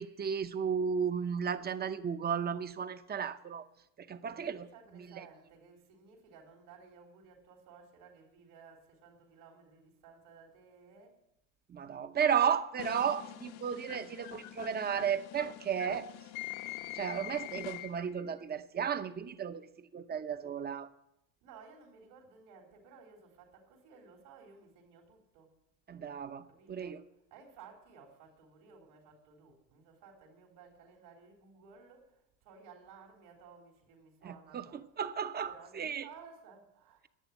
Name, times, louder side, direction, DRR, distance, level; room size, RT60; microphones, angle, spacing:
voice 1, 0.0-3.6 4.0-4.7 4.9-5.3 11.7-16.1 16.9-20.9 25.9-27.0 34.2-36.1, right 7 dB, 25° right, 0.7 m, -34 dB
voice 2, 4.2-11.2 13.5-13.6 21.4-25.6 26.5-27.0 27.3-34.8 35.4-37.1, right 5 dB, 75° right, 3.9 m, -56 dB
sound 1, 12.8-18.2, left 14 dB, 70° left, 1.1 m, -44 dB
11.0 x 8.3 x 9.9 m
cardioid pair, 125°, 39 cm